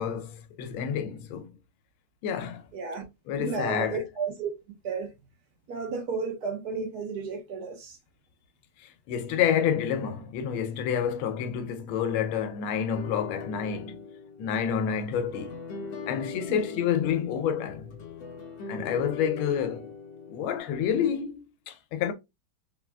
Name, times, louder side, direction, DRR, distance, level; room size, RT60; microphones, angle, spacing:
voice 1, 0.0-1.5 2.2-2.6 3.3-4.0 8.8-14.0 14.4-15.6 16.0-17.9 18.7-19.9 20.3-22.1, left 8 dB, 90° left, 1.4 m, -29 dB
voice 2, 2.7-3.0 3.4-4.5 4.8-5.1 5.7-8.0 16.5-16.6, right 4 dB, 60° right, 1.2 m, -32 dB
sound 1, 12.9-20.6, left 4 dB, 70° left, 1.3 m, -41 dB
3.8 x 2.4 x 2.2 m
omnidirectional pair, 2.2 m